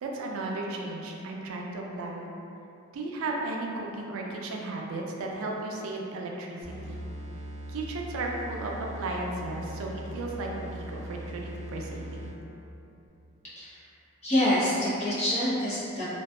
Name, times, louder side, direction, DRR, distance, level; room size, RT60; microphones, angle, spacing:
voice 1, 0.0-2.3 2.9-6.6 6.9-7.0 7.7-12.3, right 2 dB, 80° right, -1 dB, 0.3 m, -35 dB
sound 1, 6.6-12.5, right 1 dB, 30° right, 0.6 m, -40 dB
voice 2, 14.2-16.0, left 1 dB, 35° left, -11 dB, 0.7 m, -26 dB
2.6 x 2.2 x 2.2 m, 2.8 s
head